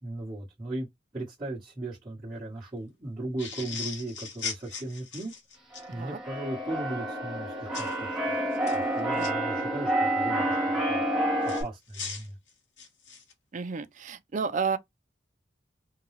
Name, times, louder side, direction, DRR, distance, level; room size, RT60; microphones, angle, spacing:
voice 1, 0.0-0.9 1.1-5.3 5.9-8.2 8.7-10.6 10.9-11.0 11.4-12.3, right 2 dB, 25° right, 1.3 m, -37 dB
sound 1, 3.4-5.9 7.7-8.0 8.5-9.3 11.4-13.3, left 5 dB, 75° left, 1.4 m, -38 dB
Keyboard (musical), 5.7-11.6, right 1 dB, 5° right, 0.9 m, -29 dB
voice 2, 13.5-14.8, right 5 dB, 40° right, 0.5 m, -31 dB
3.7 x 2.3 x 3.2 m
head